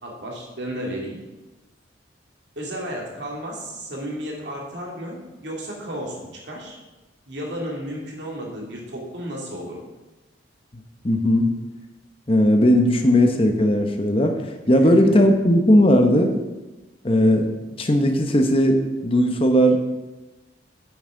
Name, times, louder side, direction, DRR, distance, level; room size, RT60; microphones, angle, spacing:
voice 1, 0.0-1.2 2.6-6.2 6.4-6.8 7.3-9.8 14.8-15.1, equal, 70° right, -2 dB, 2.5 m, -33 dB
voice 2, 11.0-11.5 12.3-14.4 14.7-16.4 17.0-17.5 17.8-19.9, equal, 30° left, 5 dB, 0.9 m, -17 dB
9.9 x 8.1 x 3.8 m, 1.1 s
head